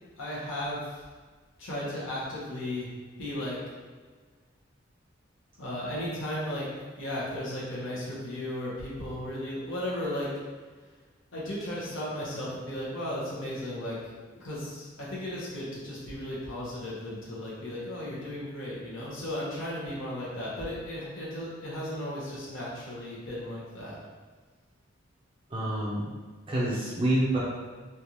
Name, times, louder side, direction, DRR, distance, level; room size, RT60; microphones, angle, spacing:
voice 1, 0.2-1.0 1.6-2.9 3.2-3.6 5.6-6.7 7.0-10.3 11.3-14.1 14.3-24.0, left 1 dB, 80° left, -7 dB, 1.1 m, -35 dB
voice 2, 25.5-26.1 26.5-27.4, right 1 dB, 25° right, -7 dB, 0.5 m, -27 dB
3.4 x 2.5 x 2.8 m, 1.4 s
head